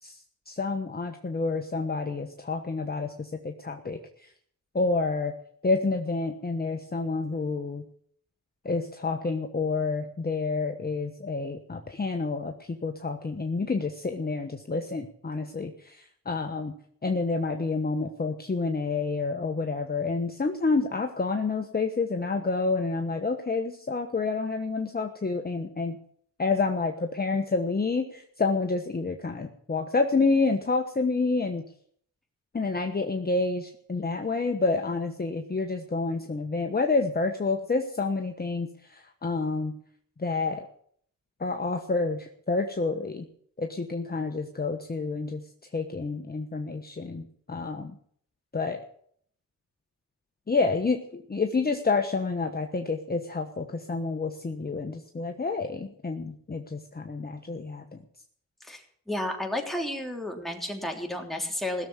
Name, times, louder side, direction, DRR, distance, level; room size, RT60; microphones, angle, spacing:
voice 1, 0.0-4.3 4.7-5.3 5.6-7.9 8.6-16.7 17.0-26.0 26.4-31.7 32.5-39.8 40.2-40.7 41.4-43.3 43.6-45.5 45.7-48.0 48.5-48.8 50.5-58.0, left 3 dB, 25° left, 5 dB, 1.2 m, -29 dB
voice 2, 58.6-61.9, left 1 dB, ahead, 1 dB, 3.3 m, -32 dB
17.0 x 7.2 x 9.6 m, 0.63 s
cardioid pair, 75°, 34 cm